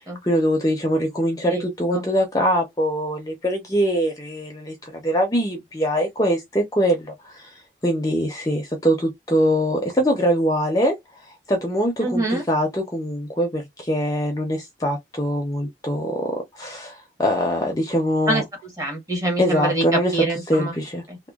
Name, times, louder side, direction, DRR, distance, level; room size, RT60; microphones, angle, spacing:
voice 1, 0.2-11.0 11.2-18.4 19.4-20.1 20.5-21.0, equal, 20° left, 0.5 m, -23 dB
voice 2, 12.0-12.4 18.3-20.7 21.1-21.2, right 2 dB, 15° right, 0.9 m, -25 dB
2.9 x 2.0 x 2.3 m
head